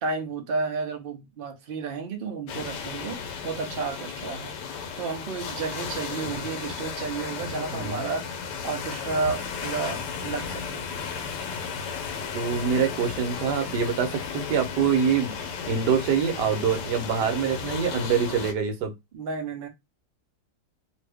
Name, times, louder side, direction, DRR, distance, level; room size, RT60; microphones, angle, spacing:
voice 1, 0.0-4.5 5.0-10.9 19.1-19.7, right 4 dB, 55° right, 0.6 m, -32 dB
sound 1, 2.5-18.5, left 6 dB, 90° left, 1.2 m, -34 dB
voice 2, 7.7-8.0 12.3-15.3 15.7-18.9, right 6 dB, 80° right, 1.3 m, -25 dB
2.8 x 2.6 x 3.3 m
omnidirectional pair, 1.8 m